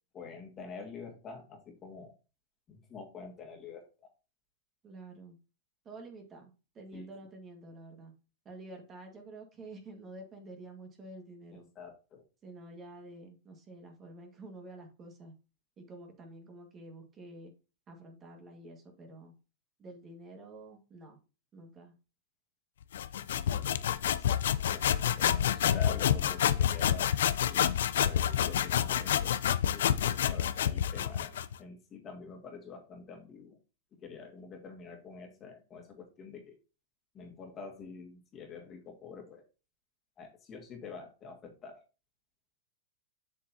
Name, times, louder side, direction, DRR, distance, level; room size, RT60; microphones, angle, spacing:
voice 1, 0.1-2.1 2.7-4.1 6.9-7.1 11.5-12.2 23.5-24.9 25.2-33.6 33.9-36.6 37.1-39.4 40.2-41.8, left 5 dB, 30° left, 2 dB, 1.9 m, -47 dB
voice 2, 4.8-5.4 5.9-8.1 8.5-11.7 12.4-15.3 15.8-17.5 17.9-19.3 19.8-21.2 21.5-21.9, right 2 dB, 30° right, 3 dB, 1.7 m, -49 dB
sound 1, 22.9-31.5, left 10 dB, 75° left, 0.5 m, -28 dB
7.3 x 6.6 x 2.8 m, 0.32 s
hypercardioid pair, 120°, 0 cm